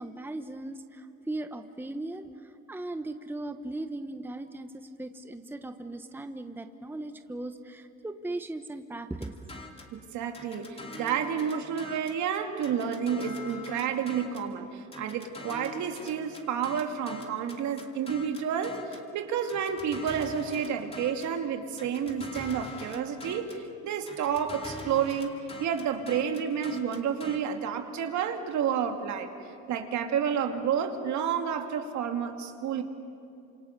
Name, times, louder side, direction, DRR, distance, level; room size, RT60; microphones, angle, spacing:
voice 1, 0.0-9.7, right 2 dB, 5° right, 7 dB, 1.1 m, -38 dB
sound 1, 9.2-10.0 10.3-12.2 12.6-14.5 14.9-19.1 19.5-21.4 21.8-23.7 24.1-27.4, left 2 dB, 20° left, 2.7 m, -44 dB
voice 2, 9.9-25.3 25.6-29.3 29.7-32.8, right 7 dB, 65° right, 4 dB, 2.5 m, -30 dB
28.5 x 26.5 x 6.9 m, 2.5 s
cardioid pair, 100°, 30 cm